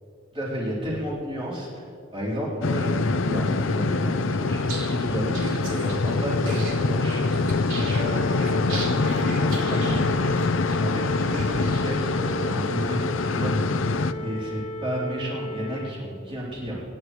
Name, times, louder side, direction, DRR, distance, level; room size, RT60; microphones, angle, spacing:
voice 1, 0.3-1.8 2.1-7.2 7.8-10.3 10.8-13.7 14.2-16.8, equal, 25° right, -7 dB, 3.8 m, -32 dB
sound 1, 2.6-14.1, left 3 dB, 75° left, 0.6 m, -24 dB
sound 2, 4.6-12.2, right 3 dB, 75° right, 3.5 m, -39 dB
sound 3, 7.9-15.9, left 1 dB, 30° left, 0.9 m, -35 dB
26.0 x 11.0 x 3.2 m, 2.6 s
head